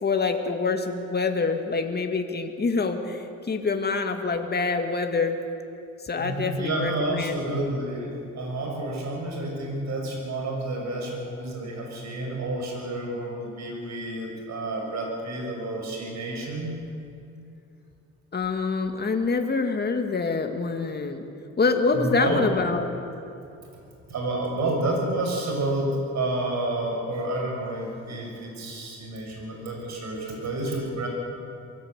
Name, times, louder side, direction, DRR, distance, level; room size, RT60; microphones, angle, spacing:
voice 1, 0.0-5.4 6.0-7.4 18.3-21.3 21.6-22.9, left 4 dB, 35° left, 5 dB, 2.3 m, -26 dB
voice 2, 6.2-16.7 21.9-22.4 24.1-31.1, right 2 dB, 65° right, 0 dB, 6.0 m, -30 dB
23.5 x 16.0 x 8.4 m, 2.6 s
cardioid pair, 90°, 30 cm